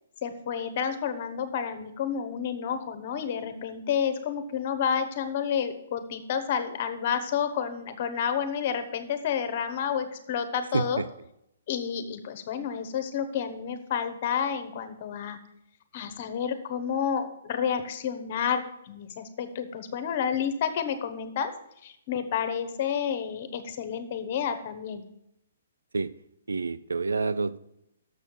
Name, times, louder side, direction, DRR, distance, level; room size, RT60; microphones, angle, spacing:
voice 1, 0.2-11.0 11.7-15.4 15.9-21.5 21.8-25.0, left 7 dB, 45° left, 10 dB, 1.1 m, -30 dB
voice 2, 10.7-11.1 25.9-26.1 26.5-27.6, right 4 dB, 85° right, 15 dB, 0.4 m, -28 dB
6.8 x 6.3 x 7.0 m, 0.80 s
hypercardioid pair, 135°, 0 cm